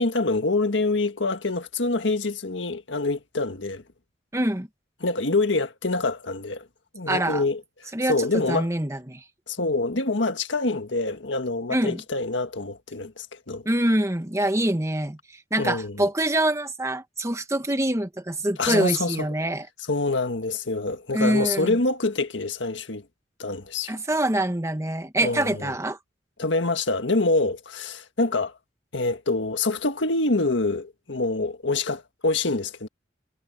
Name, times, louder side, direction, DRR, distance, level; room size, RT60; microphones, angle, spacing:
voice 1, 0.0-3.8 5.0-6.7 6.9-7.6 8.1-8.7 9.5-13.6 15.6-16.0 18.6-19.3 19.9-23.0 23.4-24.0 25.2-25.8 26.4-28.6 28.9-32.9, left 3 dB, 80° left, 1.7 m, -26 dB
voice 2, 4.3-4.7 7.1-7.4 7.9-9.2 11.7-12.0 13.6-15.2 15.5-19.7 21.1-21.8 23.9-26.0, right 1 dB, 15° right, 1.4 m, -25 dB
head